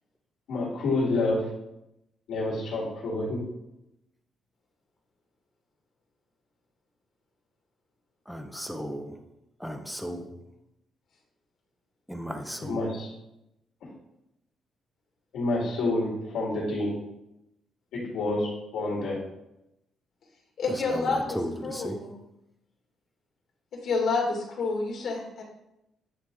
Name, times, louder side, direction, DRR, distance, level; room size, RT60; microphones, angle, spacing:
voice 1, 0.5-1.5 2.3-3.4 12.6-13.1 15.3-16.9 17.9-19.2, left 2 dB, 85° left, -5 dB, 2.2 m, -28 dB
voice 2, 8.3-9.2 9.6-10.4 12.1-13.0 20.7-22.1, equal, ahead, 5 dB, 0.7 m, -36 dB
voice 3, 20.6-21.4 21.6-22.1 23.7-25.4, left 3 dB, 65° left, -1 dB, 2.0 m, -29 dB
9.1 x 3.5 x 3.7 m, 0.87 s
cardioid pair, 90°, 0 cm